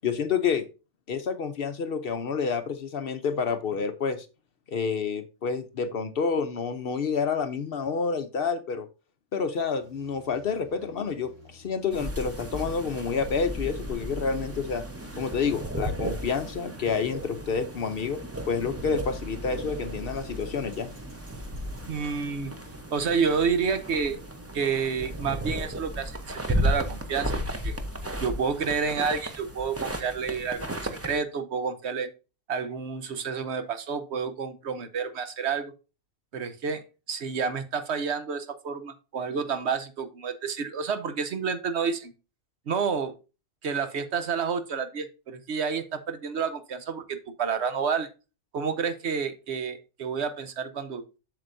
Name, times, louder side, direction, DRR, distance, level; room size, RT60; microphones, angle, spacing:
voice 1, 0.0-0.7 1.1-4.3 4.7-8.9 9.3-14.8 15.2-18.2 18.5-20.9, left 5 dB, 55° left, 10 dB, 0.8 m, -29 dB
Bicycle, 9.4-26.9, left 1 dB, 90° right, 4.7 m, -55 dB
sound 1, 11.9-31.2, equal, 15° right, 0.6 m, -34 dB
voice 2, 21.9-22.5 22.9-24.2 24.5-27.7 28.2-32.1 32.5-35.7 36.3-42.1 42.7-43.1 43.6-48.1 48.5-51.0, right 6 dB, 65° right, 10 dB, 1.1 m, -29 dB
7.7 x 6.7 x 2.6 m, 0.31 s
omnidirectional pair, 1.3 m